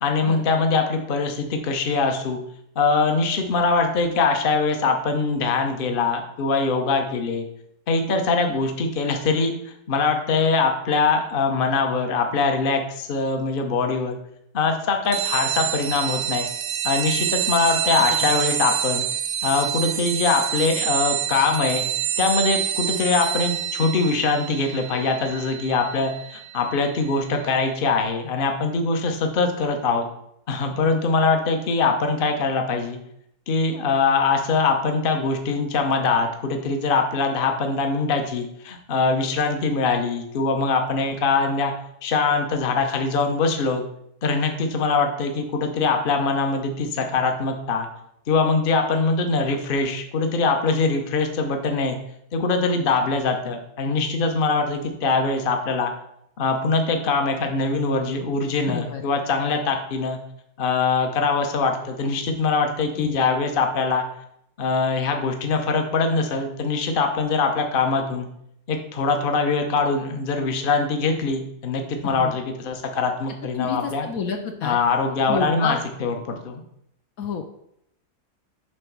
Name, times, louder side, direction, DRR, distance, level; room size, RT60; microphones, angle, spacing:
voice 1, 0.0-2.4 2.8-7.4 7.9-14.2 14.5-16.5 16.8-19.1 19.4-21.9 22.2-30.1 30.5-33.0 33.5-41.7 42.0-43.8 44.2-47.9 48.3-52.0 52.3-55.9 56.4-60.2 60.6-64.0 64.6-68.3 68.7-74.0 74.6-76.6, left 4 dB, 40° left, 4 dB, 0.8 m, -23 dB
sound 1, 15.1-27.2, right 10 dB, 70° right, 0.9 m, -27 dB
voice 2, 58.6-59.0 63.0-63.2 72.0-72.4 73.6-74.8 75.3-75.8 77.2-77.4, left 6 dB, 65° left, 4 dB, 1.1 m, -29 dB
7.9 x 3.3 x 6.0 m, 0.75 s
omnidirectional pair, 1.7 m